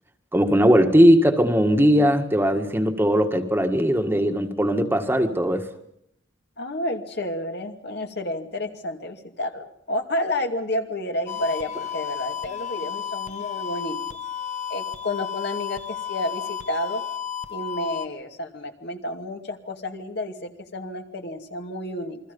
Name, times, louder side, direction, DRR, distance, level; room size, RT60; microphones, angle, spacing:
voice 1, 0.3-5.7, equal, 10° right, 5 dB, 1.8 m, -19 dB
voice 2, 6.6-14.0 14.7-17.0 17.5-22.2, left 1 dB, 60° left, 5 dB, 2.5 m, -30 dB
sound 1, 11.3-18.1, left 8 dB, 40° left, 1.2 m, -32 dB
28.5 x 22.5 x 5.5 m, 0.72 s
head